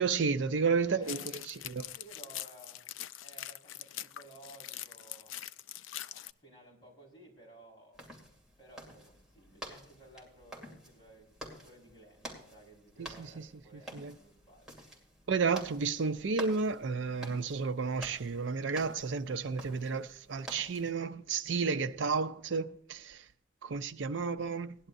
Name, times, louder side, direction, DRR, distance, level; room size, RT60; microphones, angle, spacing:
voice 1, 0.0-1.9 13.0-13.4 13.9-14.1 15.3-23.2 23.6-24.8, right 5 dB, 75° right, 0.5 m, -32 dB
voice 2, 0.8-1.3 1.9-2.9 3.2-5.4 6.2-8.1 8.6-14.8, right 2 dB, 25° left, 4.7 m, -56 dB
sound 1, 1.0-6.3, left 13 dB, 85° left, 0.4 m, -43 dB
sound 2, 7.9-20.9, right 1 dB, 5° right, 2.5 m, -49 dB
18.0 x 11.0 x 2.6 m
head